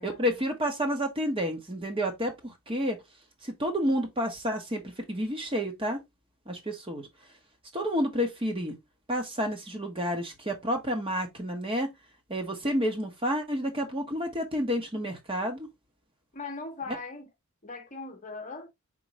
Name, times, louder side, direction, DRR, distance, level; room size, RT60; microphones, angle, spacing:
voice 1, 0.0-3.0 3.4-4.8 5.1-6.0 6.5-7.1 7.7-8.8 9.1-11.9 12.3-15.7, equal, 25° right, 1.1 m, -30 dB
voice 2, 16.3-17.3 17.6-18.7, left 3 dB, 35° left, 0.9 m, -39 dB
4.5 x 3.9 x 3.0 m
head